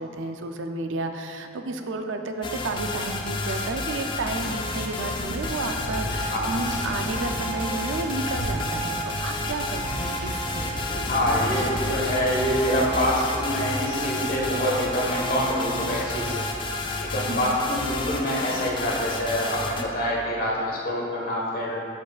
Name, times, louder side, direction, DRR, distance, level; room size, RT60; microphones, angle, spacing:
voice 1, 0.0-11.1 17.3-17.6, right 3 dB, 80° right, 6 dB, 0.5 m, -32 dB
sound 1, 2.4-19.8, left 3 dB, 25° left, 0.4 m, -31 dB
sound 2, 2.5-18.9, equal, 65° left, 0.9 m, -38 dB
sound 3, 5.4-16.8, right 5 dB, 85° left, 1.5 m, -37 dB
voice 2, 11.0-16.4 17.0-21.8, equal, 50° left, -4 dB, 1.3 m, -26 dB
10.5 x 4.7 x 2.4 m, 2.5 s
head